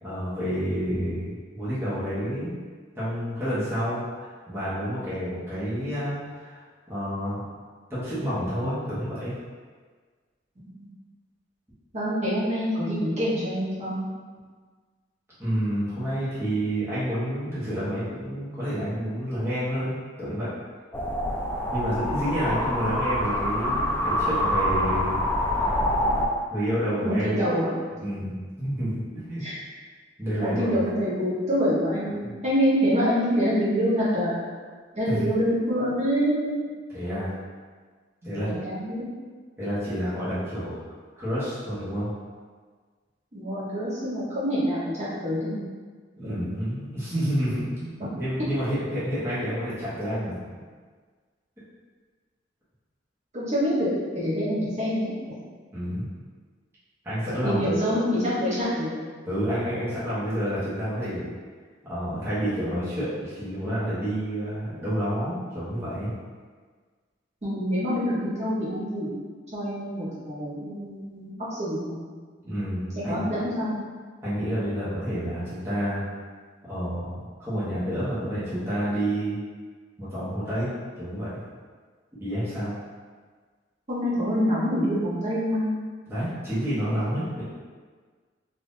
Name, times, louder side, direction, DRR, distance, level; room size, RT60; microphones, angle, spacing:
voice 1, 0.0-2.5 3.0-6.6 6.9-7.4 7.9-9.3 15.4-20.5 21.7-25.3 26.5-27.4 28.0-28.3 28.6-29.4 30.2-30.8 32.2-32.3 35.1-35.3 36.9-37.3 38.2-38.5 39.6-40.8 41.2-42.1 46.2-50.4 55.7-56.1 57.0-57.7 59.3-61.3 61.8-66.1 72.4-73.3 74.2-76.0 76.6-79.4 80.0-80.7 81.0-81.3 82.2-82.7 86.1-87.4, equal, 15° right, -13 dB, 1.0 m, -29 dB
voice 2, 11.9-14.1 27.0-27.7 29.4-29.5 30.4-34.4 34.9-36.4 38.2-39.1 43.3-45.6 46.2-46.4 53.3-55.1 57.4-58.9 67.4-69.1 69.5-72.0 72.9-73.8 83.9-85.7, equal, 40° right, -11 dB, 1.0 m, -26 dB
sound 1, 20.9-26.3, equal, 10° left, 0.3 m, -26 dB
3.5 x 2.6 x 2.6 m, 1.5 s
head